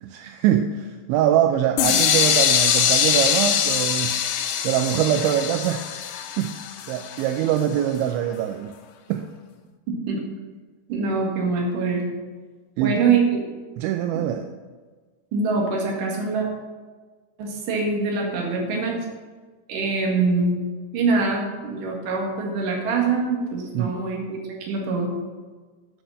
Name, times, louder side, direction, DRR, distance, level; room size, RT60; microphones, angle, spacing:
voice 1, 0.0-4.2 4.6-6.6 6.9-8.7 9.1-9.3 12.8-13.2 13.8-14.5 23.7-24.0, right 10 dB, 85° right, 7 dB, 2.7 m, -23 dB
sound 1, 1.8-7.6, left 9 dB, 75° left, 2.7 m, -22 dB
voice 2, 9.9-10.2 10.9-12.0 12.8-13.4 14.1-14.2 15.3-16.5 17.4-19.0 19.7-20.6 20.9-25.1, right 4 dB, 55° right, -1 dB, 2.8 m, -24 dB
10.0 x 6.5 x 6.6 m, 1.4 s
omnidirectional pair, 5.6 m